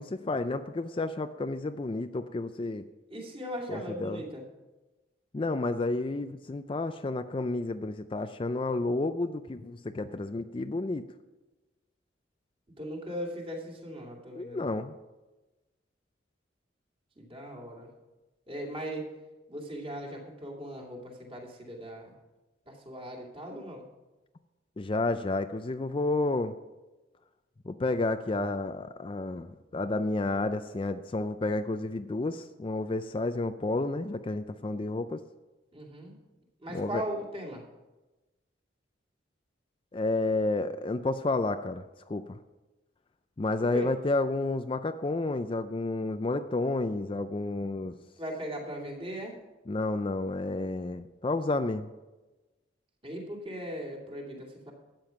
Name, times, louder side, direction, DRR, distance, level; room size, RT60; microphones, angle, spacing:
voice 1, 0.0-2.8 3.7-4.2 5.3-11.0 14.3-14.9 24.8-26.5 27.7-35.2 36.7-37.0 39.9-41.8 42.1-42.4 43.4-47.9 49.7-51.9, left 2 dB, 30° left, 9 dB, 0.4 m, -31 dB
voice 2, 3.1-4.4 12.8-14.8 17.2-17.9 18.5-19.1 19.5-22.1 22.7-23.8 35.7-36.1 36.6-37.6 43.6-43.9 48.2-49.4 53.0-54.7, equal, 30° right, -1 dB, 2.6 m, -38 dB
13.0 x 9.1 x 5.7 m, 1.1 s
head